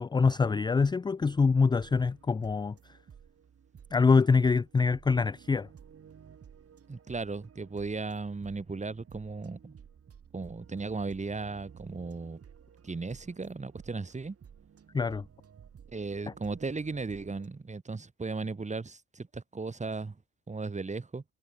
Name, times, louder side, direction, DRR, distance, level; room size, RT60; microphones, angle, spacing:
voice 1, 0.0-2.8 3.9-5.7 14.9-15.2, left 4 dB, 15° left, 0.4 m, -25 dB
sound 1, 1.6-17.5, right 7 dB, 50° right, 6.8 m, -54 dB
voice 2, 6.9-9.7 10.3-12.4 12.8-14.4 15.9-20.2 20.5-21.2, right 4 dB, 25° right, 2.8 m, -36 dB
cardioid pair, 90°, 30 cm